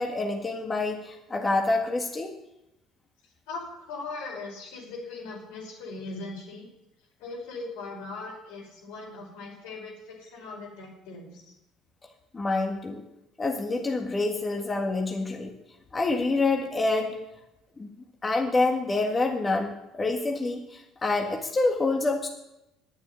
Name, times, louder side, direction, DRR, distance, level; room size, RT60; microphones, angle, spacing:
voice 1, 0.0-2.3 12.3-13.0 13.4-15.6 15.9-17.2 17.8-17.9 18.2-22.3, left 3 dB, 25° left, 2 dB, 1.8 m, -27 dB
voice 2, 3.5-6.7 7.2-11.5, left 3 dB, 80° left, -1 dB, 5.5 m, -39 dB
9.7 x 8.6 x 9.6 m, 0.90 s
supercardioid pair, 75°, 0 cm